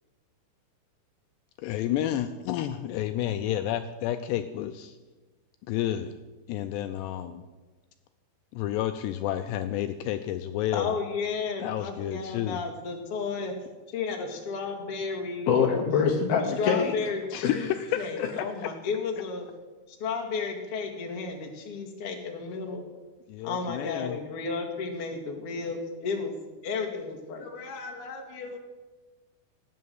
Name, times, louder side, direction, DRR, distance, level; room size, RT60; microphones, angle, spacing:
voice 1, 1.6-5.0 5.7-6.1 6.5-7.4 8.5-11.0 11.6-12.6 17.3-17.8 23.3-24.2, left 12 dB, 90° left, 9 dB, 2.4 m, -30 dB
voice 2, 10.7-13.5 13.9-15.6 16.6-19.5 19.9-22.8 23.4-26.3 26.6-28.6, left 5 dB, 45° left, 3 dB, 1.9 m, -33 dB
voice 3, 15.5-16.9 18.2-18.3, left 6 dB, 70° left, 4 dB, 2.4 m, -24 dB
16.5 x 9.5 x 7.8 m, 1.3 s
omnidirectional pair, 5.7 m